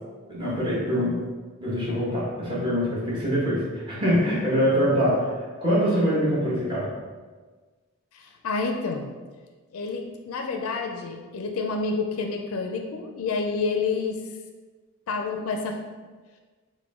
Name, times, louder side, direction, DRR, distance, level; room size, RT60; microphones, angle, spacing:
voice 1, 0.3-1.2 1.6-5.3 5.6-6.9, equal, 20° right, -8 dB, 1.2 m, -24 dB
voice 2, 8.1-9.1 9.7-14.2 15.1-16.0, left 4 dB, 75° left, 4 dB, 0.4 m, -29 dB
4.8 x 2.1 x 3.6 m, 1.4 s
head